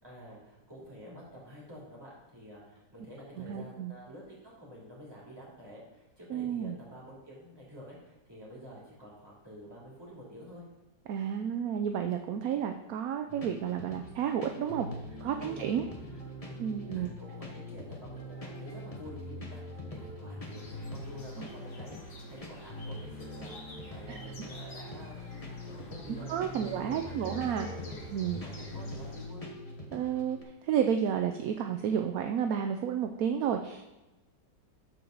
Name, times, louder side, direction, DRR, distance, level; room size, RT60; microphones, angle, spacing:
voice 1, 0.0-10.6 15.1-26.3 26.5-29.5, equal, 15° right, -6 dB, 2.9 m, -49 dB
voice 2, 3.4-3.9 6.3-6.8 11.1-14.9 15.2-15.9 16.6-17.1 21.4-21.5 24.1-24.2 26.3-27.7 28.1-28.4 29.9-30.4 30.6-33.8, right 8 dB, 70° right, 5 dB, 0.9 m, -31 dB
sound 1, 13.3-30.4, left 1 dB, 25° left, 1.1 m, -43 dB
sound 2, 20.5-29.3, left 1 dB, 65° left, 2.1 m, -51 dB
12.5 x 4.5 x 3.9 m, 1.1 s
omnidirectional pair, 1.9 m